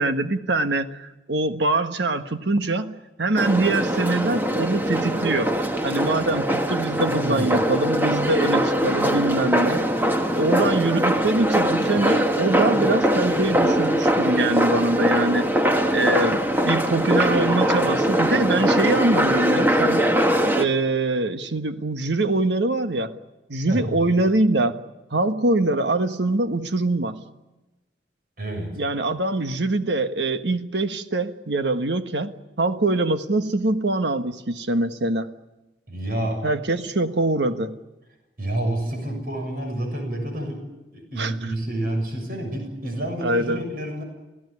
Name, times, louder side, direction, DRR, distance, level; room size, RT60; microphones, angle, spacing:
voice 1, 0.0-5.5 5.8-9.9 10.3-20.1 20.5-23.1 23.5-24.8 25.1-27.2 28.7-35.3 36.4-37.7 41.2-41.3 43.2-43.6, right 2 dB, 75° right, 9 dB, 1.5 m, -23 dB
sound 1, 3.4-20.6, equal, 10° right, 1.4 m, -22 dB
voice 2, 7.1-7.6 23.7-24.0 28.4-28.7 35.9-36.5 38.4-40.6 40.9-44.0, right 1 dB, 55° right, 4 dB, 7.1 m, -29 dB
28.5 x 16.5 x 9.7 m, 1.1 s
head